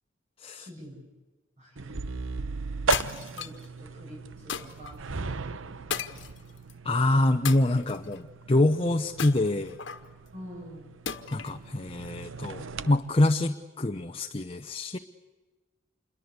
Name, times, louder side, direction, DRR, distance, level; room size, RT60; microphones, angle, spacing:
voice 1, 0.5-1.1 1.6-2.0 3.1-6.6 10.3-10.9, equal, 40° right, -2 dB, 7.7 m, -47 dB
sound 1, 1.8-12.9, right 4 dB, 90° right, 0.9 m, -37 dB
sound 2, 2.9-3.7 4.5-4.9 5.9-6.7 7.4-8.2 9.2-10.1 11.1-11.6, left 7 dB, 65° left, 1.5 m, -35 dB
voice 2, 6.8-9.8 11.3-15.0, left 2 dB, 30° left, 6 dB, 0.8 m, -25 dB
28.0 x 22.0 x 8.2 m, 1.3 s
head